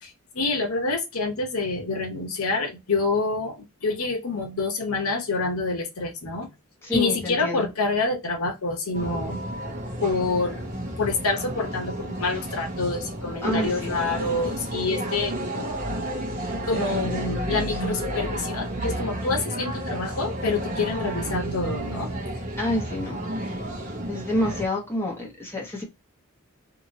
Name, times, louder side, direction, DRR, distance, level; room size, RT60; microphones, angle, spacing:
voice 1, 0.0-3.6 3.8-6.5 6.9-9.5 10.0-10.7 11.0-15.8 16.7-22.1, left 3 dB, 85° left, 0.9 m, -27 dB
voice 2, 6.8-7.7 13.4-14.0 17.7-17.8 22.6-23.6 24.1-25.8, left 1 dB, 10° left, 1.1 m, -28 dB
sound 1, 8.9-24.7, right 1 dB, 40° right, 0.8 m, -31 dB
2.9 x 2.7 x 2.6 m
head